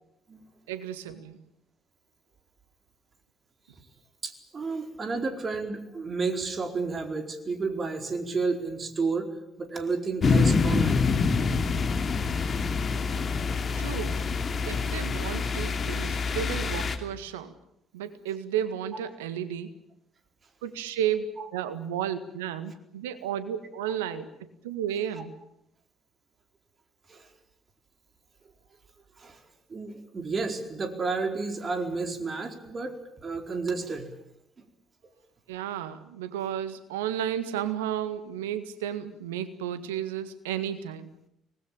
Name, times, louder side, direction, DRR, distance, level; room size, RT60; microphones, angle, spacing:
voice 1, 0.7-1.4 13.8-14.3 14.6-17.5 17.9-19.7 20.6-21.3 21.5-24.3 24.6-25.3 35.5-41.1, right 10 dB, 80° right, 12 dB, 1.7 m, -33 dB
voice 2, 4.2-9.3 9.6-11.1 21.4-21.5 27.1-27.3 29.2-29.4 29.7-33.0 33.2-34.1, right 4 dB, 35° right, 6 dB, 4.4 m, -31 dB
sound 1, 10.2-17.0, left 4 dB, 40° left, 2.7 m, -26 dB
25.5 x 20.0 x 8.8 m, 0.77 s
figure-of-eight pair, 50°, 0 cm